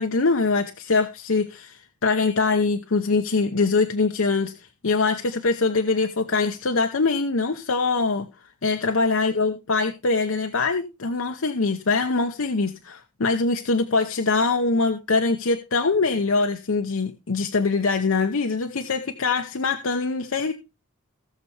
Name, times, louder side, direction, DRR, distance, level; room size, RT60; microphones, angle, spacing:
voice 1, 0.0-4.5 4.8-8.3 8.6-20.5, left 4 dB, 75° left, 6 dB, 0.8 m, -23 dB
18.5 x 6.7 x 3.3 m, 0.27 s
head